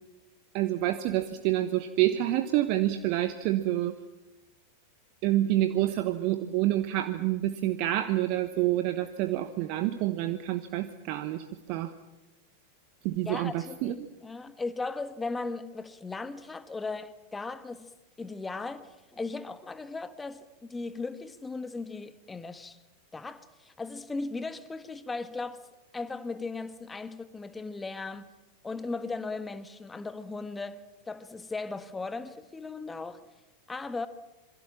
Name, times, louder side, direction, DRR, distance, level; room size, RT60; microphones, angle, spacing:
voice 1, 0.5-4.0 5.2-11.9 13.0-14.1, right 14 dB, 45° right, 1.1 m, -28 dB
voice 2, 13.2-17.9 18.2-22.8 23.1-25.6 25.9-28.3 28.6-33.2 33.7-34.1, left 3 dB, 10° left, 1.4 m, -37 dB
27.0 x 23.0 x 7.4 m
figure-of-eight pair, 90°, 0 cm